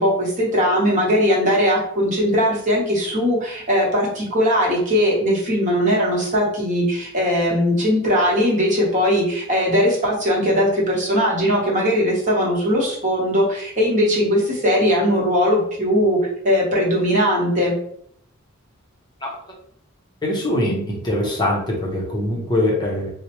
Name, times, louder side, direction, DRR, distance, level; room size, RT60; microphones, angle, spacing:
voice 1, 0.0-17.7, equal, 35° right, -3 dB, 1.0 m, -19 dB
voice 2, 20.2-23.1, left 1 dB, 20° left, -2 dB, 0.6 m, -22 dB
4.2 x 2.1 x 2.9 m, 0.68 s
head